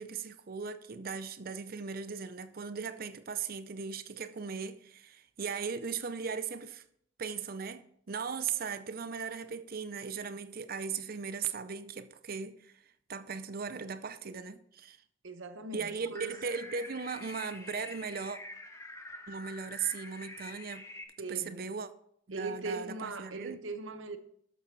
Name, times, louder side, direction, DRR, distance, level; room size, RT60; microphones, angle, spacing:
voice 1, 0.0-6.8 7.2-12.8 13.1-15.0 15.7-18.4 19.3-20.9 21.3-21.9 22.3-23.6, right 6 dB, 50° right, 0.6 m, -38 dB
voice 2, 15.2-16.4 21.2-21.7 22.3-24.2, right 3 dB, 90° right, 1.0 m, -40 dB
sound 1, 16.1-21.0, left 2 dB, 15° left, 0.9 m, -46 dB
12.5 x 6.2 x 4.6 m
head